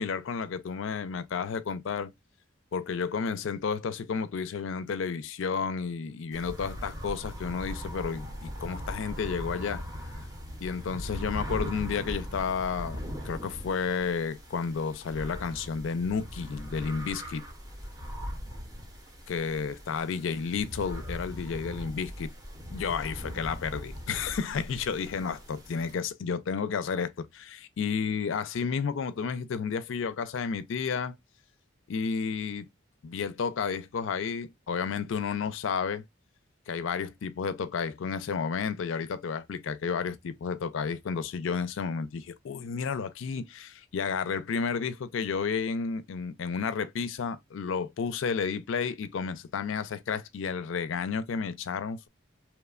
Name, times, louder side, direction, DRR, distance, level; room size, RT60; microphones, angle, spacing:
voice 1, 0.0-2.1 2.7-9.9 10.6-13.0 13.2-17.4 19.3-22.3 22.7-31.1 31.9-32.7 33.0-36.0 36.7-52.1, left 6 dB, 65° left, 0.4 m, -31 dB
sound 1, 6.3-25.9, equal, 20° right, 0.6 m, -40 dB
3.0 x 2.1 x 2.3 m
head